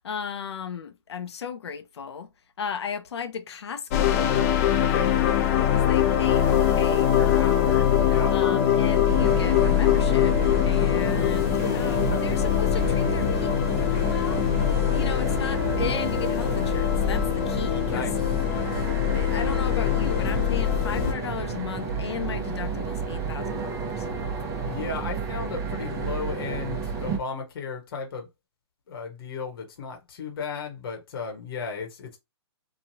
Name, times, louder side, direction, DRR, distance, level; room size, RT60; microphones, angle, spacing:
voice 1, 0.0-2.3 2.6-4.3 5.7-10.4 10.6-18.1 19.1-24.1, left 6 dB, 75° left, 0.6 m, -35 dB
sound 1, 3.9-21.1, left 11 dB, 30° left, 0.4 m, -23 dB
voice 2, 4.8-5.1 8.0-8.3 11.6-12.2 17.9-18.2 18.5-18.9 24.6-28.3 28.9-32.2, left 5 dB, 55° left, 1.0 m, -35 dB
Wind instrument woodwind instrument, 6.2-10.3, right 4 dB, 70° right, 0.6 m, -36 dB
sound 2, 9.1-27.2, right 5 dB, 20° right, 0.7 m, -31 dB
3.0 x 2.3 x 2.7 m
hypercardioid pair, 140°, 14 cm